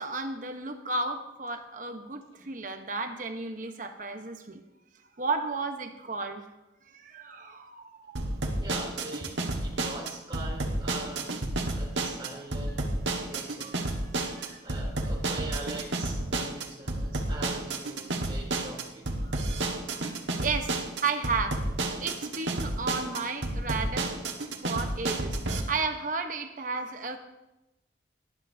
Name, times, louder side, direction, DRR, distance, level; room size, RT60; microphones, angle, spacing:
voice 1, 0.0-4.6 5.2-6.4 6.9-8.2 13.6-14.6 19.2-19.5 19.9-20.0 20.4-21.6 22.0-24.2 24.6-27.2, right 4 dB, 45° right, 6 dB, 1.0 m, -33 dB
sound 1, 8.2-25.6, right 2 dB, 80° right, 1.5 m, -31 dB
voice 2, 8.6-11.4 11.7-12.9 13.3-13.9 14.1-19.1, right 2 dB, 25° right, -3 dB, 3.2 m, -43 dB
18.0 x 10.0 x 2.8 m, 0.96 s
head